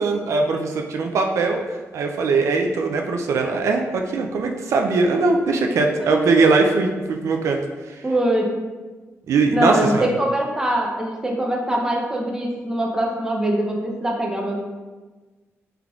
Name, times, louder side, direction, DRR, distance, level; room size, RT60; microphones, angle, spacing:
voice 1, 0.0-1.6 1.9-7.6 7.9-8.0 9.3-10.1, right 3 dB, 80° right, 3 dB, 0.3 m, -20 dB
voice 2, 6.0-6.5 8.0-8.5 9.5-14.6, right 1 dB, 15° right, 0 dB, 0.5 m, -23 dB
3.7 x 3.3 x 2.3 m, 1.3 s
wide cardioid pair, 130°, 5 cm